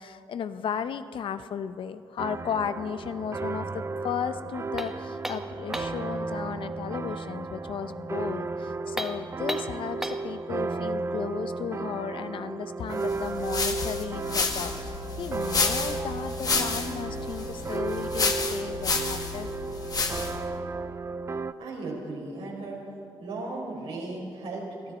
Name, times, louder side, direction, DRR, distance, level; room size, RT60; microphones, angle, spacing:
voice 1, 0.0-19.5, left 7 dB, 65° left, 12 dB, 0.7 m, -35 dB
sound 1, 2.2-21.5, right 3 dB, 30° right, 0.5 m, -34 dB
sound 2, 4.8-6.1 8.9-10.3, equal, 5° right, 1.1 m, -35 dB
sound 3, 13.1-20.5, left 4 dB, 40° left, 1.7 m, -30 dB
voice 2, 21.6-22.8 23.2-24.9, right 2 dB, 80° right, -3 dB, 4.4 m, -36 dB
23.0 x 13.5 x 4.2 m, 2.8 s
supercardioid pair, 65°, 9 cm